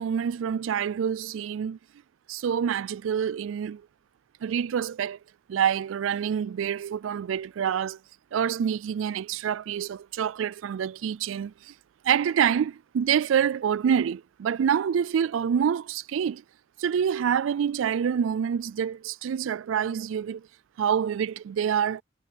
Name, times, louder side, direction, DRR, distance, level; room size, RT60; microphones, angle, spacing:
voice 1, 0.0-1.8 2.3-3.8 4.4-5.2 5.5-8.0 8.3-11.7 12.0-16.4 16.8-20.5 20.8-22.0, right 8 dB, 80° right, 0.3 m, -26 dB
head